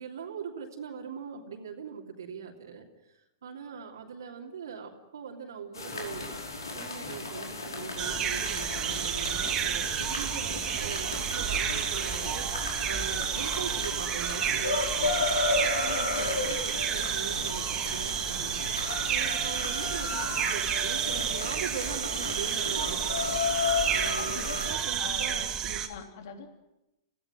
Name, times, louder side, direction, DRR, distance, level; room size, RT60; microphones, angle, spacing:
voice 1, 0.0-2.8 3.4-6.3 6.7-15.3 15.7-23.3 23.9-25.9, right 6 dB, 70° right, 0 dB, 2.9 m, -41 dB
sound 1, 5.7-24.8, left 3 dB, 80° left, 5.1 m, -34 dB
sound 2, 8.0-25.9, right 8 dB, 25° right, 2.5 m, -31 dB
voice 2, 24.2-25.5 25.9-26.5, left 6 dB, 55° left, 5 dB, 3.4 m, -44 dB
30.0 x 16.5 x 7.9 m, 0.97 s
figure-of-eight pair, 105°, 2 cm